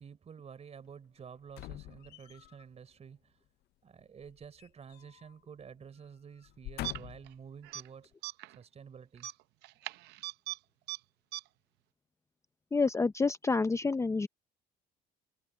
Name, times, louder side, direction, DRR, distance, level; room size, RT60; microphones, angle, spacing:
voice 1, 0.0-3.4 3.8-8.2 8.6-9.3, right 7 dB, 40° right, 4.3 m, -50 dB
sound 1, 1.5-2.6 4.2-5.3 5.6-5.8 6.4-7.4 8.0-8.1, left 17 dB, 75° left, 0.5 m, -45 dB
sound 2, 6.8-7.3 7.6-7.9 8.2-8.6 9.2-10.6 10.9-11.0 11.3-11.4, right 16 dB, 90° right, 0.6 m, -40 dB
voice 2, 12.7-14.3, left 4 dB, 15° left, 0.6 m, -28 dB
cardioid pair, 110°, 17 cm